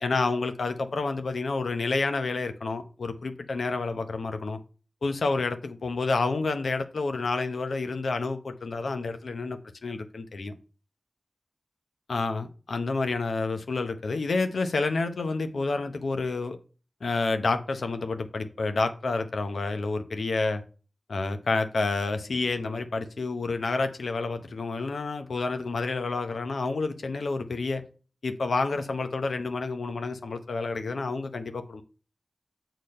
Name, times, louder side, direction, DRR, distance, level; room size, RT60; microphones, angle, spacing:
voice 1, 0.0-4.6 5.0-10.5 12.1-16.6 17.0-20.6 21.1-27.8 28.2-31.8, left 3 dB, 90° left, 0.8 m, -29 dB
6.7 x 4.0 x 5.3 m
wide cardioid pair, 55°, 0 cm